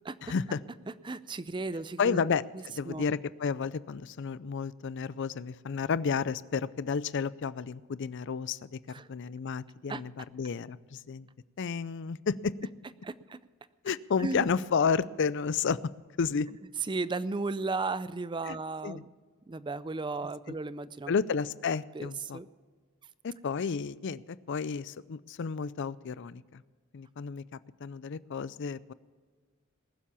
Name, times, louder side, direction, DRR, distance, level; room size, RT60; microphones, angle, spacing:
voice 1, 0.2-0.6 2.0-8.8 9.1-11.3 11.6-12.5 13.8-15.8 16.2-16.5 18.5-18.6 18.8-19.0 20.5-20.6 21.1-22.4 23.2-26.6 26.9-28.9, left 5 dB, 60° left, 18 dB, 0.4 m, -31 dB
voice 2, 1.0-2.2 2.5-3.1 8.9-9.1 9.9-10.0 13.0-13.4 14.2-14.5 16.8-19.1 19.5-21.1 21.9-22.5, right 3 dB, 20° right, 16 dB, 0.4 m, -35 dB
20.0 x 7.4 x 7.0 m, 1.6 s
head